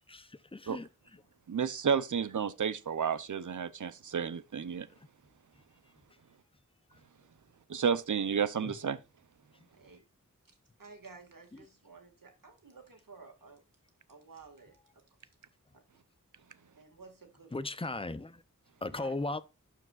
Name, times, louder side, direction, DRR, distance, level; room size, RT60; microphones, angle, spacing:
voice 1, 0.1-0.9 8.6-8.8 17.5-18.4 18.8-19.4, left 2 dB, 15° left, 0.6 m, -37 dB
voice 2, 1.5-4.9 7.7-9.0, right 7 dB, 65° right, 0.6 m, -31 dB
voice 3, 9.7-10.0 10.8-13.6 14.1-15.0 15.7-15.8 16.8-17.8 18.9-19.1, right 4 dB, 85° right, 1.9 m, -53 dB
12.0 x 4.7 x 2.4 m
wide cardioid pair, 65°, 32 cm